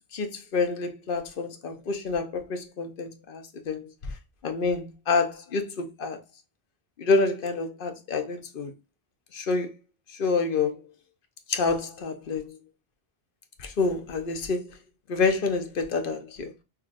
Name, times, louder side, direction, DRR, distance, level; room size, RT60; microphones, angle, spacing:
voice 1, 0.1-3.9 4.4-6.2 7.0-8.7 9.3-9.7 10.2-10.8 11.5-12.6 13.6-14.7 15.1-16.5, left 4 dB, 60° left, 0.8 m, -28 dB
5.8 x 2.3 x 2.4 m
omnidirectional pair, 1.1 m